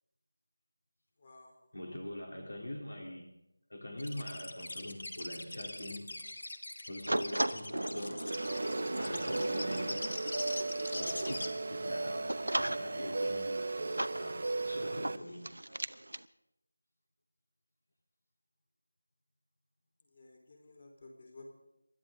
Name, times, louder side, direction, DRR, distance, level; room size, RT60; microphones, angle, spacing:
voice 1, 1.2-1.5 20.1-21.5, left 2 dB, 35° left, 1 dB, 4.1 m, -54 dB
voice 2, 1.7-3.3 3.7-6.2 6.9-8.4 9.0-10.2 10.9-15.6, left 1 dB, 75° left, 2 dB, 3.5 m, -43 dB
sound 1, 4.0-11.5, left 2 dB, 60° left, 1.8 m, -42 dB
sound 2, 7.1-16.2, right 1 dB, 85° right, 0.8 m, -38 dB
sound 3, 8.3-15.2, right 3 dB, 45° right, 1.0 m, -36 dB
28.5 x 12.5 x 3.8 m, 0.89 s
figure-of-eight pair, 170°, 0 cm